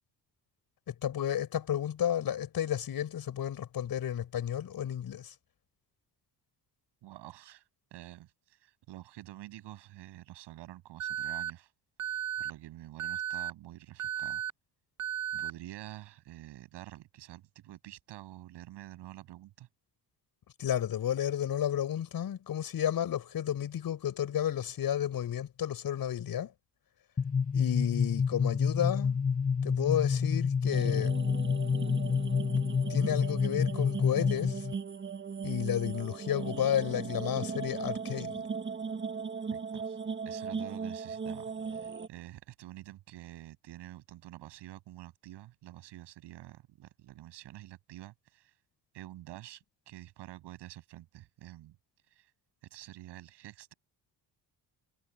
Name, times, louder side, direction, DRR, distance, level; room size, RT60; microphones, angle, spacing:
voice 1, 0.9-5.3 20.6-26.5 27.5-29.2 29.6-31.2 32.9-34.7 35.4-38.4, left 10 dB, 60° left, 6.4 m, -32 dB
voice 2, 7.0-11.7 12.0-14.4 15.3-19.7 39.5-40.0 40.3-48.5 48.9-51.8 52.1-52.3 52.7-53.7, right 15 dB, 90° right, 7.5 m, -48 dB
Alarm, 11.0-11.5 12.0-12.5 13.0-13.5 14.0-14.5 15.0-15.5, right 10 dB, 45° right, 0.9 m, -34 dB
sound 1, 27.2-34.7, left 6 dB, 20° left, 1.2 m, -29 dB
sound 2, 30.7-42.1, right 5 dB, 30° right, 1.8 m, -38 dB
cardioid pair, 110°, 40 cm